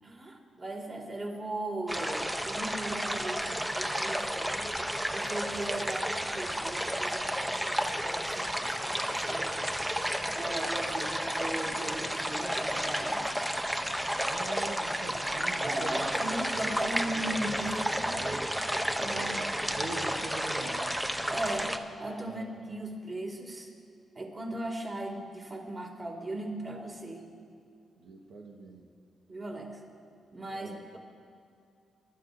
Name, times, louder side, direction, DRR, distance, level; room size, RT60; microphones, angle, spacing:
voice 1, 0.0-4.7 5.1-9.6 10.2-13.3 15.6-17.8 19.0-19.4 21.3-21.7 22.0-23.7 24.2-27.3 29.3-29.8 30.3-31.0, right 1 dB, 35° right, 0 dB, 2.2 m, -38 dB
sound 1, 1.9-21.8, equal, 5° right, 0.7 m, -32 dB
voice 2, 14.3-18.6 19.1-21.0 22.2-22.5 28.0-28.9 30.5-30.8, right 2 dB, 80° right, 0 dB, 1.2 m, -43 dB
24.5 x 12.5 x 2.6 m, 2.4 s
cardioid pair, 95°, 0 cm